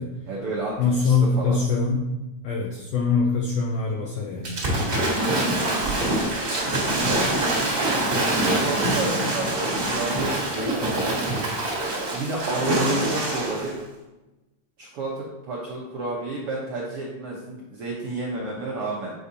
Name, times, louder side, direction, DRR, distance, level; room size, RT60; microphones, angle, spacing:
voice 1, 0.3-1.6 8.4-11.1 12.1-13.8 14.8-19.1, right 2 dB, 70° right, -4 dB, 1.4 m, -31 dB
voice 2, 0.8-2.0 2.4-4.5 18.4-18.5, left 4 dB, 90° left, -1 dB, 1.4 m, -23 dB
Waves surf / Splash splatter, 4.4-13.7, right 1 dB, 40° right, 1.5 m, -24 dB
8.4 x 4.9 x 2.7 m, 1.0 s
omnidirectional pair, 3.7 m